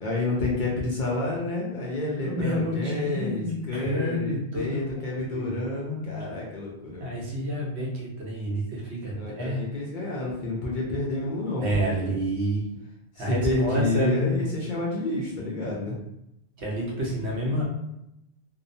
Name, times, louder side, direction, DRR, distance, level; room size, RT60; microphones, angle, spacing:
voice 1, 0.0-7.2 9.1-12.1 13.2-16.0, left 2 dB, 55° left, -4 dB, 0.6 m, -29 dB
voice 2, 2.0-6.3 7.0-9.6 11.6-12.7 13.2-14.4 16.6-17.6, right 1 dB, 75° right, -3 dB, 1.0 m, -29 dB
2.8 x 2.0 x 2.6 m, 0.85 s
omnidirectional pair, 1.1 m